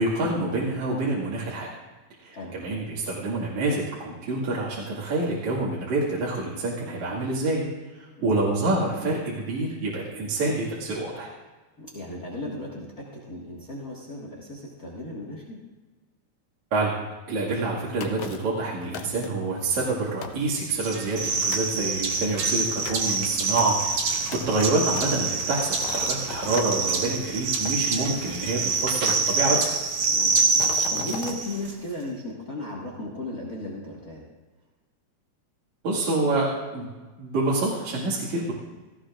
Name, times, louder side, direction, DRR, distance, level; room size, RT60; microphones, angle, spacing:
voice 1, 0.0-1.7 2.2-7.6 7.9-11.3 16.7-17.0 17.3-29.7 35.8-36.5 36.7-36.9 37.2-38.5, right 2 dB, 75° right, -7 dB, 3.4 m, -27 dB
voice 2, 8.2-8.6 11.8-15.6 30.1-34.3, left 1 dB, 35° left, -4 dB, 1.8 m, -36 dB
sound 1, 18.0-18.5 18.9-19.5 19.9-20.0 20.2-21.3 21.5-21.8 22.3-26.8 27.6-28.5 29.1-29.8 30.3-31.4, left 6 dB, 70° left, 1.9 m, -38 dB
sound 2, 20.8-31.7, right 4 dB, 55° right, 2.3 m, -26 dB
18.0 x 15.5 x 2.5 m, 1.3 s
omnidirectional pair, 3.4 m